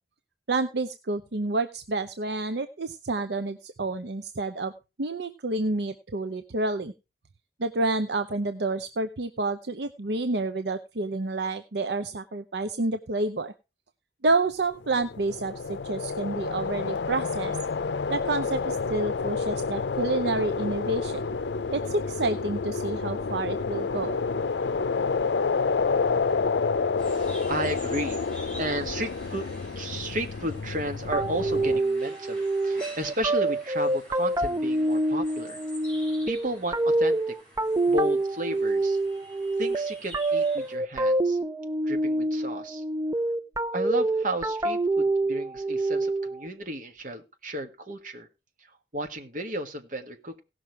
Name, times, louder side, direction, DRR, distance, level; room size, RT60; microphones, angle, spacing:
voice 1, 0.5-4.7 5.0-6.9 7.6-13.5 14.2-17.6 18.1-21.2 21.7-24.2, right 2 dB, 70° right, 9 dB, 0.7 m, -29 dB
sound 1, 14.8-31.8, left 4 dB, 75° left, 0.5 m, -29 dB
sound 2, 27.0-40.8, equal, 5° left, 7.3 m, -48 dB
voice 2, 27.5-28.2 28.6-29.5 29.7-35.6 36.3-37.3 37.9-39.0 39.6-41.4 41.9-42.8 43.7-48.3 48.6-50.4, right 1 dB, 50° right, 6 dB, 1.7 m, -33 dB
sound 3, 31.1-46.5, right 2 dB, 20° right, 0.5 m, -26 dB
17.0 x 6.2 x 4.7 m, 0.29 s
head